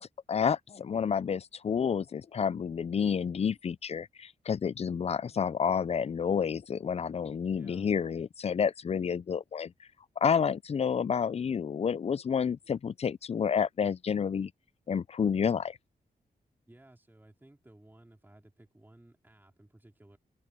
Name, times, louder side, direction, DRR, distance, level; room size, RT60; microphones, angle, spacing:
voice 1, 0.0-9.7 10.2-14.5 14.9-15.8, left 7 dB, 40° left, 0.4 m, -30 dB
voice 2, 7.6-7.9 16.7-20.2, right 1 dB, 10° right, 3.3 m, -57 dB
open air
cardioid pair, 90°, 16 cm